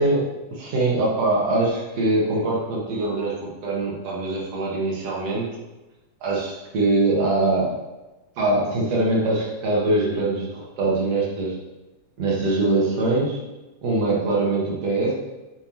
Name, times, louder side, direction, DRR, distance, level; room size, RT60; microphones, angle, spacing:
voice 1, 0.0-5.5 6.2-7.8 8.4-11.6 12.2-13.4 13.8-15.1, right 2 dB, 60° right, -3 dB, 2.6 m, -23 dB
9.6 x 4.5 x 3.1 m, 1.1 s
omnidirectional pair, 3.4 m